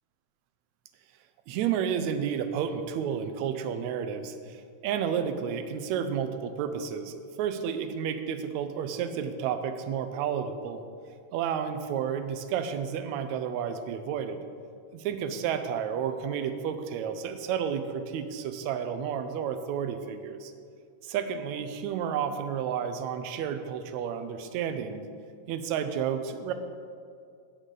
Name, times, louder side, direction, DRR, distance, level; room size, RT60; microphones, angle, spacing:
voice 1, 1.5-10.8 11.3-14.4 14.9-20.5 21.0-25.1 25.5-26.5, right 8 dB, 80° right, 9 dB, 1.9 m, -31 dB
15.5 x 6.5 x 3.9 m, 2.3 s
omnidirectional pair, 3.3 m